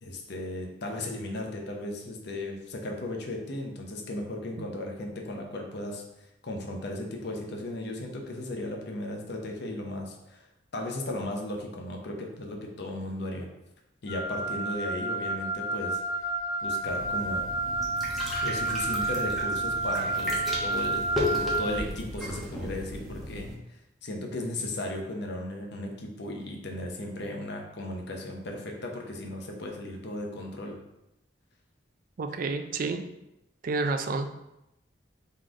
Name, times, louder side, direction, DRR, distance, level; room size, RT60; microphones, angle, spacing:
voice 1, 0.0-6.0 6.4-10.4 10.7-13.5 14.0-16.0 16.6-17.5 18.4-30.8, left 1 dB, 65° left, 1 dB, 0.8 m, -36 dB
Wind instrument woodwind instrument, 14.1-21.8, right 2 dB, 30° left, 0.8 m, -30 dB
sound 1, 16.8-23.5, left 1 dB, ahead, 0.9 m, -35 dB
voice 2, 32.2-33.0 33.6-34.3, right 3 dB, 50° right, 7 dB, 0.4 m, -29 dB
4.0 x 3.2 x 3.7 m, 0.88 s
head